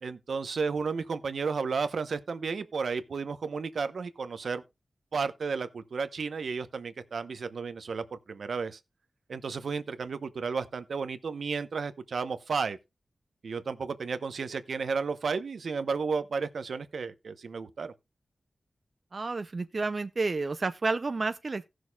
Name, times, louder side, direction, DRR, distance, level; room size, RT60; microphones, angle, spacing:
voice 1, 0.0-4.6 5.1-8.8 9.3-12.8 13.4-17.9, right 5 dB, 80° right, 0.8 m, -33 dB
voice 2, 19.1-21.6, right 3 dB, 45° right, 0.5 m, -30 dB
17.5 x 6.4 x 2.3 m
wide cardioid pair, 115°, 0 cm